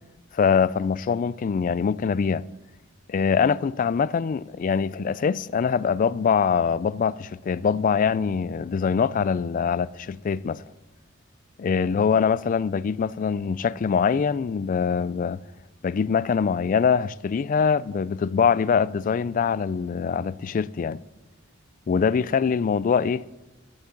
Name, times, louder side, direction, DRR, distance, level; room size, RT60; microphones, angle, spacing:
voice 1, 0.3-2.4 3.1-10.6 11.6-15.4 15.8-21.0 21.9-23.2, left 6 dB, 40° left, 0.3 m, -23 dB
13.5 x 11.5 x 3.9 m
head